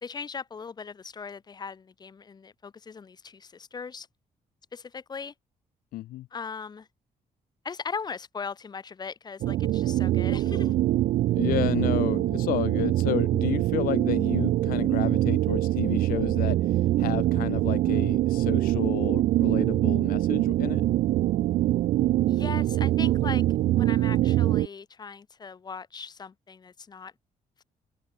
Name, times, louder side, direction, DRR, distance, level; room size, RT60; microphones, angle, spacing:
voice 1, 0.0-4.1 4.7-5.3 6.3-6.9 7.6-10.8 22.3-23.5 23.8-27.1, left 5 dB, 30° left, 0.8 m, -39 dB
voice 2, 5.9-6.3 11.3-16.6 17.0-20.8, left 16 dB, 85° left, 0.4 m, -31 dB
sound 1, 9.4-24.7, right 14 dB, 70° right, 0.4 m, -24 dB
cardioid pair, 135°, 15 cm